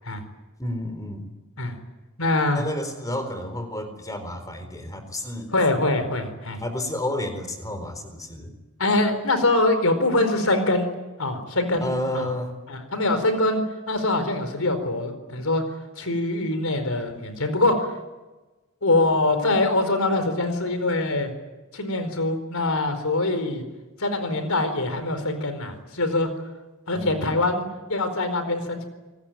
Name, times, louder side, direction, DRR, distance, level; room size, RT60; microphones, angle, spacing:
voice 1, 0.6-1.3 2.5-5.5 6.6-8.5 11.8-12.6 27.0-27.4, left 1 dB, 15° left, 8 dB, 4.1 m, -31 dB
voice 2, 2.2-2.6 5.5-6.6 8.8-10.9 11.2-11.9 12.1-12.3 12.7-15.6 16.0-17.9 18.8-21.3 21.7-23.6 24.0-26.3 26.9-28.9, left 2 dB, 75° left, 9 dB, 4.5 m, -23 dB
28.0 x 19.5 x 9.2 m, 1.1 s
head